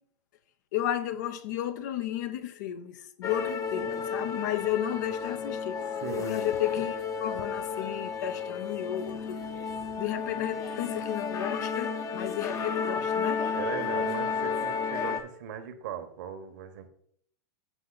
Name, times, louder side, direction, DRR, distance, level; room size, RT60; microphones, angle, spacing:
voice 1, 0.7-5.8 6.3-9.4 10.0-13.4, left 11 dB, 70° left, 0.6 m, -33 dB
sound 1, 3.2-15.2, left 6 dB, 30° left, 0.7 m, -32 dB
voice 2, 6.0-6.5 13.5-16.9, right 7 dB, 65° right, 1.1 m, -38 dB
7.0 x 5.6 x 3.9 m
hypercardioid pair, 105°, 10 cm